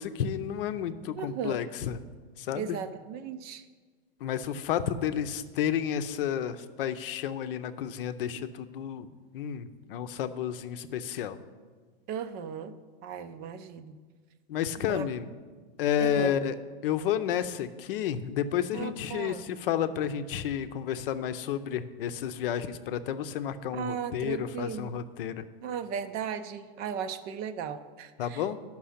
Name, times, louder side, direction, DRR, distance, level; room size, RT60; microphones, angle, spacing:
voice 1, 0.0-2.0 2.4-2.8 4.2-11.4 14.5-15.3 15.8-16.6 16.8-25.4 28.2-28.6, left 9 dB, 65° left, 11 dB, 0.7 m, -31 dB
voice 2, 1.1-1.6 2.5-3.6 12.1-12.8 13.0-14.0 14.8-15.1 16.0-16.3 18.7-19.5 23.7-24.9 25.6-28.5, right 7 dB, 35° right, 12 dB, 0.5 m, -36 dB
10.0 x 6.1 x 5.7 m, 1.4 s
hypercardioid pair, 130°, 30 cm